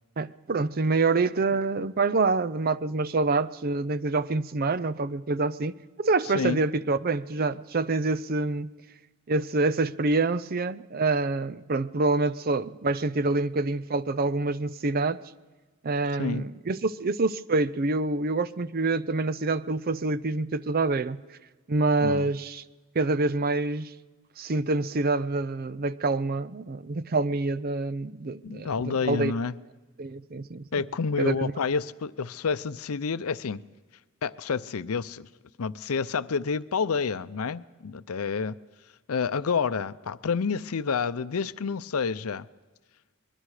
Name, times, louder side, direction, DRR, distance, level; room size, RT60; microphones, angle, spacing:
voice 1, 0.2-8.7 9.3-15.2 15.8-21.2 21.7-22.6 22.9-23.9 24.4-29.3 30.0-30.6 31.2-31.5, right 3 dB, 45° right, 0.5 m, -26 dB
voice 2, 28.4-29.5 30.7-33.6 34.2-35.3 35.6-38.6 39.1-42.5, left 5 dB, 90° left, 0.6 m, -29 dB
24.5 x 21.5 x 4.9 m
head